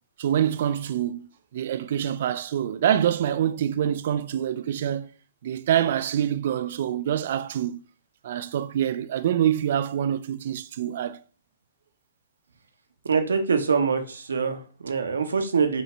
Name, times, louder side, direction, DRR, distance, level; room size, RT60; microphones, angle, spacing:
voice 1, 0.2-1.3 1.5-5.1 5.4-7.8 8.2-11.2, right 10 dB, 50° right, 0.4 m, -25 dB
voice 2, 13.0-15.8, right 5 dB, 70° right, 0.8 m, -24 dB
6.0 x 2.8 x 3.2 m
figure-of-eight pair, 115°, 0 cm